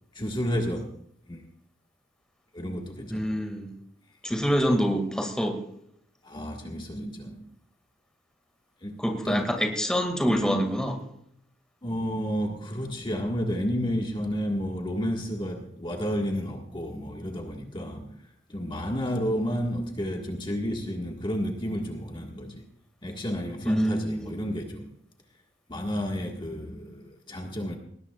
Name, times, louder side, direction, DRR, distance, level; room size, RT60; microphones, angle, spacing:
voice 1, 0.1-0.9 1.3-1.4 2.5-3.4 6.2-7.5 8.8-9.0 9.2-9.5 10.4-10.6 11.8-22.6 23.0-24.9 25.7-27.8, equal, 25° left, 1 dB, 1.7 m, -31 dB
voice 2, 3.1-3.7 4.2-5.6 9.0-10.9 23.6-24.5, equal, 5° left, 4 dB, 2.1 m, -26 dB
20.0 x 18.0 x 2.4 m, 0.71 s
head